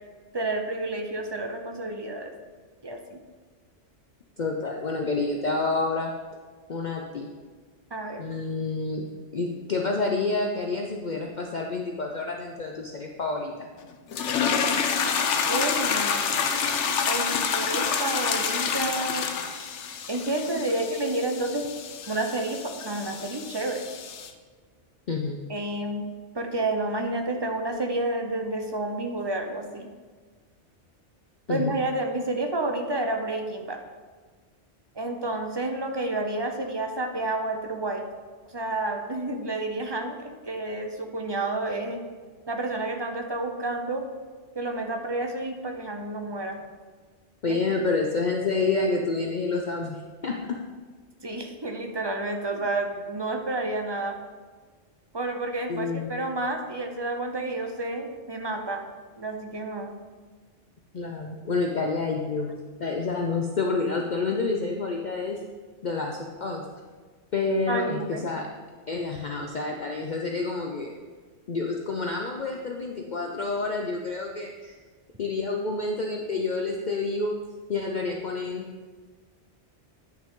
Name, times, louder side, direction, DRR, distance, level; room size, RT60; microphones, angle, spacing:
voice 1, 0.3-2.3 2.8-3.2 7.9-8.2 15.5-16.2 17.1-19.3 20.1-21.7 22.1-23.8 25.5-26.1 26.3-29.9 31.5-33.8 34.9-38.0 38.5-42.0 42.5-44.1 44.5-46.6 47.5-47.6 51.2-54.2 55.1-58.8 59.2-59.9 67.7-68.3, right 2 dB, 25° right, 4 dB, 0.7 m, -30 dB
voice 2, 4.4-6.1 6.7-7.3 8.2-9.0 9.3-13.7 25.1-25.4 31.5-31.8 47.4-50.6 52.5-52.6 55.7-56.3 60.9-62.5 62.8-65.4 65.8-66.6 67.3-68.5 68.9-70.9 71.5-74.7 75.2-77.3 77.7-78.7, left 3 dB, 45° left, 1 dB, 0.7 m, -28 dB
sound 1, 14.1-24.3, left 6 dB, 80° left, 1.0 m, -28 dB
10.0 x 5.9 x 3.7 m, 1.5 s
omnidirectional pair, 1.2 m